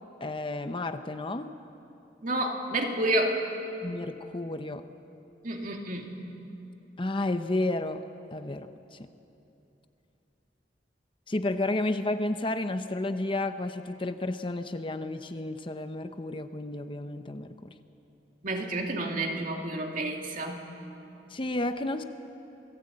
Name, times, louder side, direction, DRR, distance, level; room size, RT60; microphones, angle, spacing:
voice 1, 0.2-1.5 3.8-4.8 7.0-8.0 8.3-9.1 11.3-17.7 21.3-22.0, left 2 dB, 30° left, 9 dB, 0.7 m, -31 dB
voice 2, 2.2-3.4 5.4-6.1 18.4-20.6, right 1 dB, 50° right, 2 dB, 2.6 m, -30 dB
27.5 x 17.5 x 8.7 m, 2.9 s
head